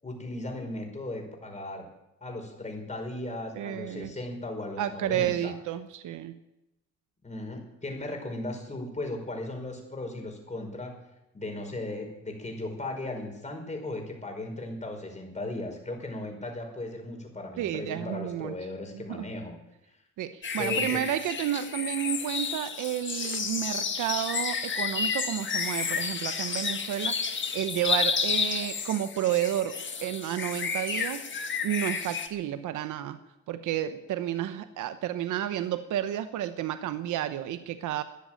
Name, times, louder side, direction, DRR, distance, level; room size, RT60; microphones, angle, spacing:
voice 1, 0.0-1.9 2.2-5.5 7.2-10.9 11.3-19.6 20.6-21.0, left 2 dB, 25° left, 3 dB, 5.1 m, -37 dB
voice 2, 3.6-4.1 4.8-6.4 17.6-18.5 18.9-19.3 20.2-31.2 31.6-33.2 33.5-38.0, right 12 dB, 80° right, 10 dB, 1.0 m, -31 dB
sound 1, 20.4-32.3, left 5 dB, 40° left, 1.7 m, -31 dB
14.0 x 10.5 x 9.0 m, 0.92 s
cardioid pair, 90°, 30 cm